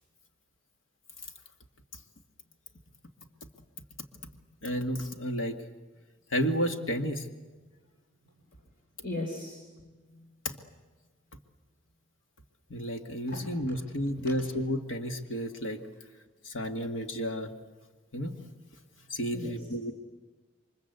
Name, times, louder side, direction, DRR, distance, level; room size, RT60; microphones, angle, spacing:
voice 1, 4.6-5.6 6.3-7.2 10.4-10.6 12.7-15.8 16.4-17.5 18.1-18.3 19.1-19.9, equal, 80° left, 6 dB, 2.2 m, -31 dB
voice 2, 9.0-10.2 13.3-13.8 14.2-14.4 19.3-19.6, left 1 dB, 50° left, 0 dB, 3.9 m, -39 dB
28.5 x 24.5 x 8.2 m, 1.3 s
head